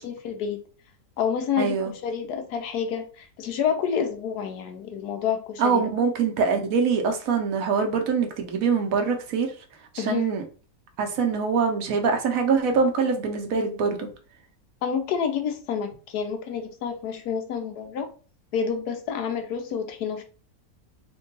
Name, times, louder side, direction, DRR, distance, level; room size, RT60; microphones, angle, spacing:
voice 1, 0.0-0.6 1.2-5.9 10.0-10.3 14.8-18.1 18.5-20.2, left 7 dB, 75° left, 5 dB, 1.2 m, -28 dB
voice 2, 1.6-1.9 5.6-9.5 9.9-10.4 11.0-14.1, right 5 dB, 65° right, 4 dB, 1.0 m, -24 dB
3.6 x 2.3 x 3.8 m, 0.38 s
omnidirectional pair, 1.7 m